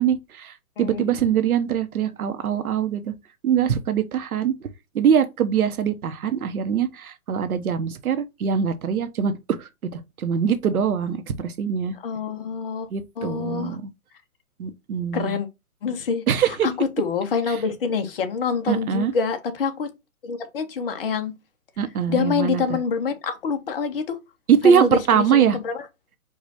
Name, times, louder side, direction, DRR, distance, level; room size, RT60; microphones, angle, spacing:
voice 1, 0.0-3.1 3.4-4.5 4.9-9.3 9.6-11.9 12.9-13.9 14.6-15.4 16.3-16.7 18.7-19.1 21.8-22.8 24.5-25.6, right 8 dB, 75° right, 1.0 m, -22 dB
voice 2, 0.8-1.3 12.0-12.9 13.2-13.8 15.1-15.5 15.8-19.9 20.2-21.3 22.1-24.2 24.6-25.9, left 5 dB, 40° left, 0.8 m, -26 dB
4.9 x 2.4 x 4.0 m
hypercardioid pair, 160°, 43 cm